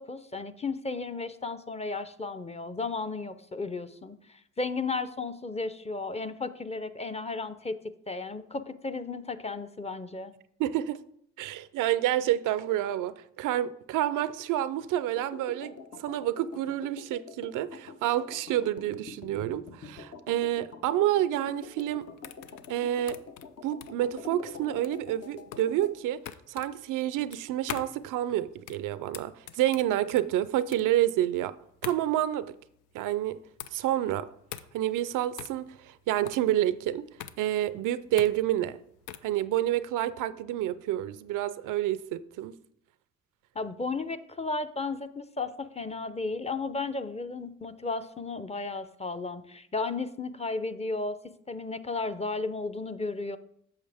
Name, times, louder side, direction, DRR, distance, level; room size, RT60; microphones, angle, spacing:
voice 1, 0.0-7.8 8.1-10.3 43.5-51.2 51.5-53.4, left 3 dB, 20° left, 0.6 m, -34 dB
voice 2, 10.6-11.0 11.4-22.0 22.7-23.2 23.6-26.2 26.5-31.5 31.8-32.5 32.9-33.4 33.7-34.3 34.7-37.0 37.4-38.8 39.2-42.5, right 13 dB, 80° right, 0.5 m, -29 dB
sound 1, 15.2-26.0, left 5 dB, 50° left, 0.9 m, -46 dB
sound 2, 21.6-39.4, left 10 dB, 80° left, 0.5 m, -44 dB
8.7 x 6.3 x 3.4 m
supercardioid pair, 60°, 31 cm